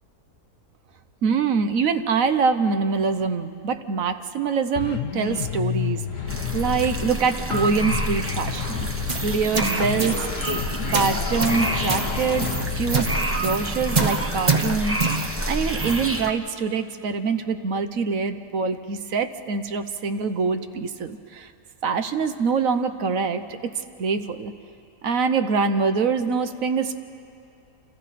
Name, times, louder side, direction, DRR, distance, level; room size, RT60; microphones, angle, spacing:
voice 1, 1.2-6.3 6.5-8.9 9.2-10.3 10.9-21.5 21.8-24.5 25.0-27.0, right 5 dB, 60° right, 9 dB, 1.3 m, -24 dB
sound 1, 4.8-7.2 7.5-9.5 9.8-13.2, left 9 dB, 65° left, 1.0 m, -30 dB
sound 2, 6.3-16.3, right 1 dB, 10° right, 0.8 m, -29 dB
sound 3, 8.9-16.1, right 3 dB, 30° right, 1.1 m, -27 dB
29.5 x 27.5 x 4.2 m, 2.5 s
omnidirectional pair, 1.7 m